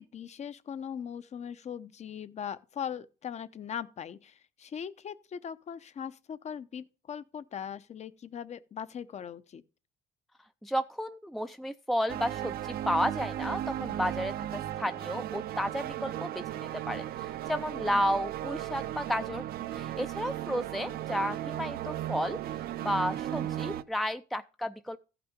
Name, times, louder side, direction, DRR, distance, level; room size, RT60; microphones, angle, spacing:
voice 1, 0.0-9.6 17.9-18.2, left 8 dB, 40° left, 0.8 m, -40 dB
voice 2, 10.6-19.4 19.7-22.4 22.8-25.0, equal, ahead, 0.5 m, -32 dB
sound 1, 12.1-23.8, right 12 dB, 65° right, 0.7 m, -36 dB
14.5 x 6.0 x 5.2 m
cardioid pair, 110°, 17 cm